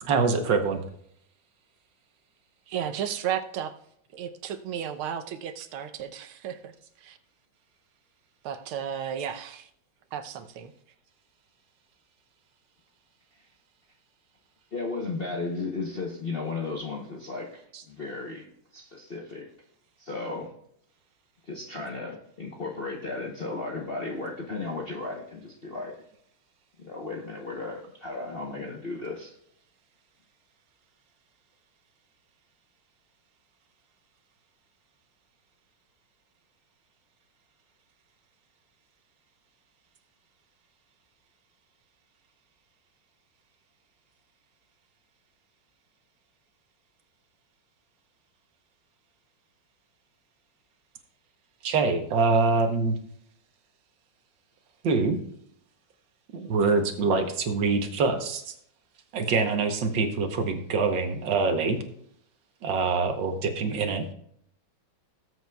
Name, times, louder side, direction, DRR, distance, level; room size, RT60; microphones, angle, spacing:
voice 1, 0.0-0.8 51.6-53.0 54.8-55.2 56.3-58.5 59.1-61.8 62.6-64.1, right 4 dB, 65° right, 1.6 m, -25 dB
voice 2, 2.7-3.7 4.1-6.7 7.0-7.2 8.4-9.7 10.1-10.7, right 9 dB, 90° right, 1.7 m, -33 dB
voice 3, 14.7-18.5 18.7-19.5 20.0-20.5 21.5-26.0 26.8-29.3, left 3 dB, 45° left, 0.7 m, -35 dB
18.5 x 8.0 x 2.3 m
omnidirectional pair, 2.3 m